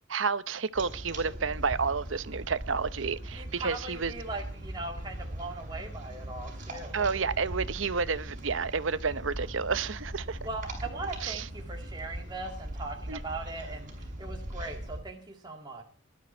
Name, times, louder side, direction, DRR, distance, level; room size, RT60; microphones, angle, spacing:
voice 1, 0.1-4.1 6.9-10.4 11.2-11.4 13.1-13.2, right 5 dB, 80° right, 0.9 m, -30 dB
sound 1, 0.7-15.0, right 1 dB, 40° right, 6.4 m, -40 dB
voice 2, 3.3-7.1 10.4-15.8, right 2 dB, 20° right, 2.3 m, -40 dB
20.0 x 12.0 x 4.5 m
head